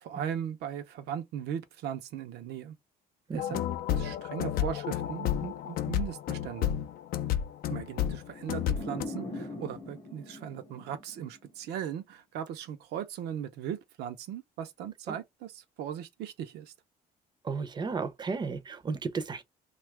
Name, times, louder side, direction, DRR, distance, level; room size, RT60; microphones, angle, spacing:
voice 1, 0.0-2.8 3.3-3.6 3.9-6.7 7.7-16.7, right 9 dB, 80° right, 0.6 m, -38 dB
sound 1, 3.4-9.1, left 11 dB, 60° left, 0.4 m, -31 dB
sound 2, 8.3-11.5, left 2 dB, 30° left, 0.8 m, -41 dB
voice 2, 17.4-19.4, right 4 dB, 25° right, 0.5 m, -34 dB
2.7 x 2.3 x 3.3 m
cardioid pair, 110°, 17 cm